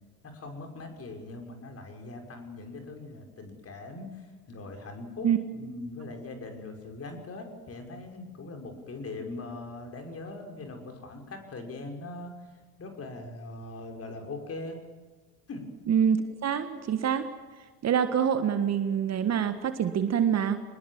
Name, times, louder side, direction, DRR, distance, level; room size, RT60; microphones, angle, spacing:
voice 1, 0.2-12.3 12.8-14.8 15.5-15.6, left 2 dB, 30° left, 4 dB, 5.9 m, -41 dB
voice 2, 15.9-17.3 17.8-20.6, right 8 dB, 35° right, 9 dB, 1.7 m, -26 dB
25.0 x 21.0 x 7.5 m, 1.4 s
figure-of-eight pair, 70°, 46 cm